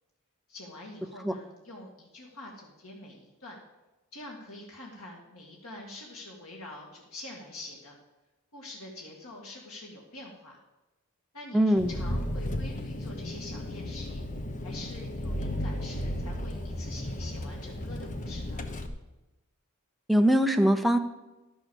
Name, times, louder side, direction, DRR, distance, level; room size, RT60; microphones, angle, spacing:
voice 1, 0.5-3.6 4.1-7.9 8.5-10.6 11.3-14.3 14.6-18.7, left 2 dB, 85° left, -2 dB, 2.0 m, -45 dB
voice 2, 11.5-11.9 20.1-21.0, equal, ahead, 8 dB, 0.7 m, -22 dB
Engine, 11.8-18.9, left 1 dB, 35° left, 0.9 m, -34 dB
12.0 x 6.4 x 7.0 m, 1.0 s
head